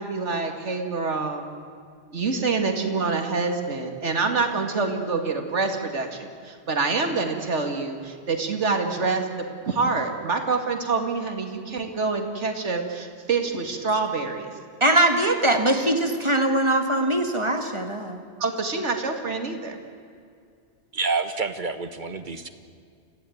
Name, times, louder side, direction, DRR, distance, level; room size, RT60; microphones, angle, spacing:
voice 1, 0.0-1.4 2.1-9.3 9.7-14.5 18.4-19.8, right 4 dB, 80° right, 4 dB, 2.4 m, -26 dB
voice 2, 14.8-18.2, right 1 dB, 25° right, 5 dB, 2.0 m, -21 dB
voice 3, 20.9-22.5, right 4 dB, 45° right, 10 dB, 1.5 m, -28 dB
27.0 x 16.0 x 9.3 m, 2.3 s
omnidirectional pair, 1.2 m